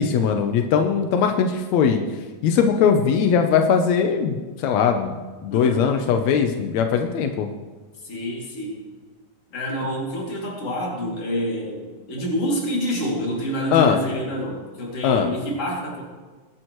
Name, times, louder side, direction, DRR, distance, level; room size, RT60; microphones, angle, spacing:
voice 1, 0.0-2.0 2.4-5.2 5.4-7.5 13.7-14.0 15.0-15.3, left 7 dB, 80° left, 5 dB, 1.6 m, -20 dB
voice 2, 5.5-5.9 8.0-8.8 9.5-16.0, equal, 40° left, -2 dB, 3.3 m, -27 dB
20.5 x 11.0 x 3.1 m, 1.3 s
omnidirectional pair, 4.2 m